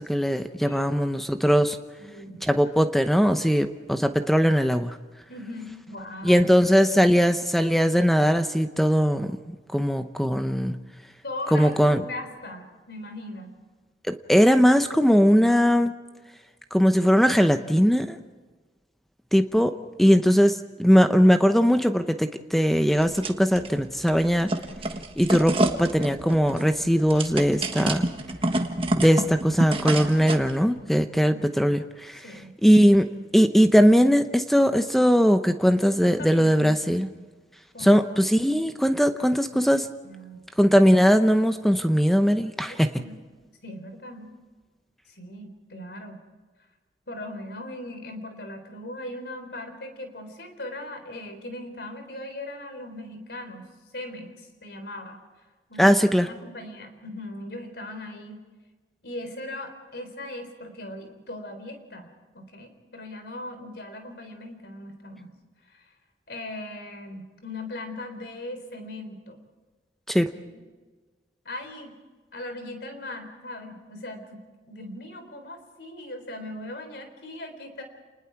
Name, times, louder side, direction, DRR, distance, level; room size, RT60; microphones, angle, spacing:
voice 1, 0.0-1.8 2.4-5.0 6.2-10.8 11.5-12.0 14.1-15.9 16.7-18.2 19.3-19.7 20.0-24.5 25.2-25.5 25.8-28.0 29.0-32.2 32.6-37.1 37.8-39.9 40.6-42.9 55.8-56.3 70.1-70.3, equal, ahead, 8 dB, 0.7 m, -20 dB
voice 2, 0.7-1.0 2.0-2.4 5.3-6.5 11.2-13.6 31.3-31.8 32.2-32.6 36.0-37.1 37.7-38.4 40.0-40.4 42.7-43.3 43.6-44.3 45.1-46.2 47.1-55.2 55.7-58.4 59.0-65.3 65.7-65.9 66.3-69.4 70.5-70.6 71.4-71.9 72.3-74.4 74.7-77.8, left 1 dB, 70° left, 7 dB, 3.8 m, -39 dB
sound 1, 23.0-23.7 24.0-30.5, right 1 dB, 30° right, 1.5 m, -28 dB
30.0 x 20.0 x 4.7 m, 1.3 s
head